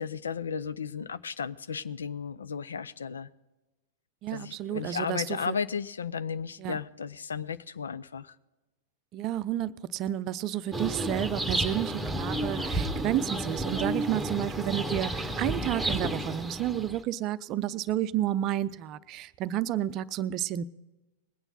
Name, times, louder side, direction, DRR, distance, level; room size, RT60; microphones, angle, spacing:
voice 1, 0.0-3.3 4.3-8.3, left 6 dB, 75° left, 16 dB, 0.5 m, -34 dB
voice 2, 4.2-5.6 6.6-6.8 9.1-20.6, right 12 dB, 40° right, 14 dB, 0.5 m, -31 dB
sound 1, 10.7-17.0, right 1 dB, ahead, 1.3 m, -31 dB
20.5 x 9.0 x 4.0 m, 1.1 s
figure-of-eight pair, 100°, 0 cm